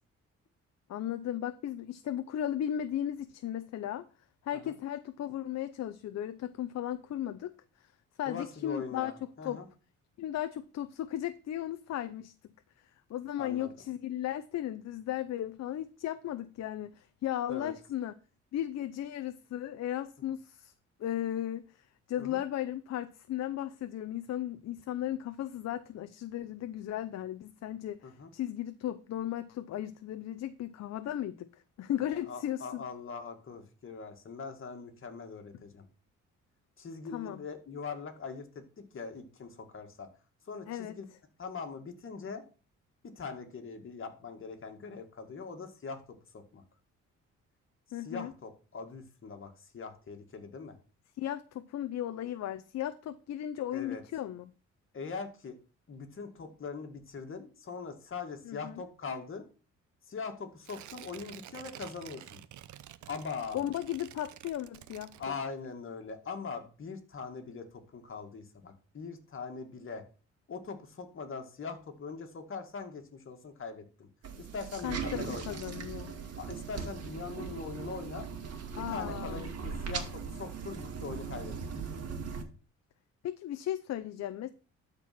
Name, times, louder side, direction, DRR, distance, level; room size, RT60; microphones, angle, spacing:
voice 1, 0.9-4.0 4.4-7.5 7.8-7.9 8.2-9.1 9.4-9.6 10.2-12.3 13.1-18.1 18.5-20.7 21.0-31.5 31.8-32.8 37.1-37.4 40.7-41.0 47.9-48.3 51.2-54.5 58.4-58.8 63.5-65.1 74.8-76.1 78.7-79.5 83.2-84.5, left 11 dB, 60° left, 0.7 m, -36 dB
voice 2, 8.3-9.7 13.4-13.7 17.5-17.7 22.2-22.4 28.0-28.3 32.0-35.9 36.8-40.1 40.5-41.1 41.4-42.4 43.0-46.0 46.3-46.6 48.0-50.8 53.7-54.0 54.9-55.6 55.9-59.5 60.1-62.4 63.1-63.7 65.2-70.0 70.5-74.1 74.4-75.5 76.4-78.3 78.8-81.5, left 5 dB, 45° left, 2.2 m, -42 dB
Tearing, 60.6-65.7 66.1-66.2, right 12 dB, 75° right, 0.7 m, -50 dB
sound 1, 74.2-82.4, right 6 dB, 55° right, 2.0 m, -39 dB
12.0 x 4.6 x 6.0 m
cardioid pair, 90°, 30 cm